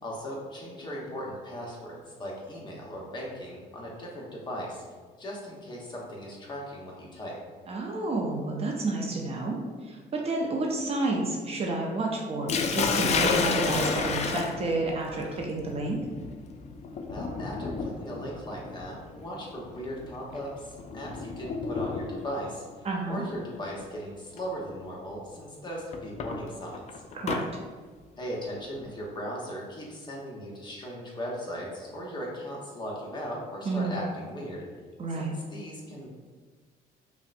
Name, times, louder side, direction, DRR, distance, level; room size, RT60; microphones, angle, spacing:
voice 1, 0.0-4.8 5.2-7.4 17.1-27.0 28.2-34.7 35.1-36.1, equal, 25° left, -3 dB, 1.0 m, -38 dB
voice 2, 7.7-9.6 9.8-16.0 22.8-23.2 27.1-27.4 33.7-34.0 35.0-35.3, right 2 dB, 35° right, 0 dB, 0.6 m, -30 dB
Sink (filling or washing), 12.5-22.4 23.5-23.9 24.4-24.5 25.9-27.4, left 5 dB, 40° left, 0.4 m, -31 dB
5.5 x 2.1 x 2.6 m, 1.4 s
cardioid pair, 110°, 17 cm